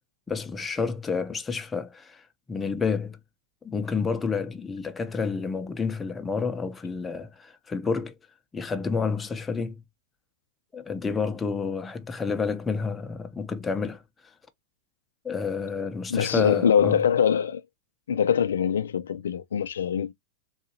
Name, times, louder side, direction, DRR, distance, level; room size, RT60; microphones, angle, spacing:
voice 1, 0.3-3.2 3.6-8.1 8.5-9.8 10.7-14.0 15.2-17.0, left 5 dB, 15° left, 0.7 m, -29 dB
voice 2, 16.1-17.6 18.1-20.1, left 8 dB, 85° left, 0.4 m, -23 dB
3.9 x 2.6 x 2.8 m
hypercardioid pair, 110°, 0 cm